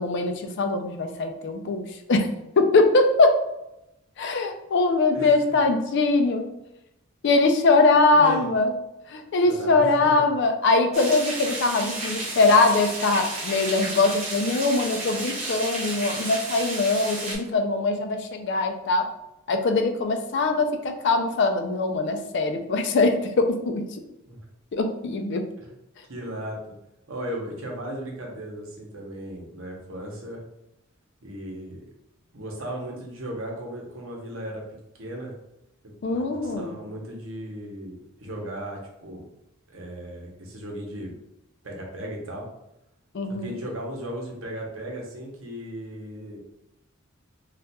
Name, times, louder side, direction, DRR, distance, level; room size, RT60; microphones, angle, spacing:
voice 1, 0.0-2.3 2.6-3.4 4.2-6.5 7.2-8.7 9.1-19.1 19.5-23.8 24.7-25.5 36.0-36.8 43.1-43.6, left 3 dB, 55° left, 5 dB, 0.4 m, -22 dB
voice 2, 5.1-5.6 8.1-8.5 9.4-10.3 24.3-24.4 25.6-25.7 26.1-26.6 27.1-30.4 31.2-31.8 32.3-34.6 35.0-35.3 35.8-39.2 39.7-41.1 41.6-42.5 43.4-46.4, equal, 70° right, -1 dB, 0.8 m, -36 dB
sound 1, 10.9-17.3, right 2 dB, 35° right, 0.8 m, -32 dB
4.0 x 2.4 x 2.2 m, 0.88 s
head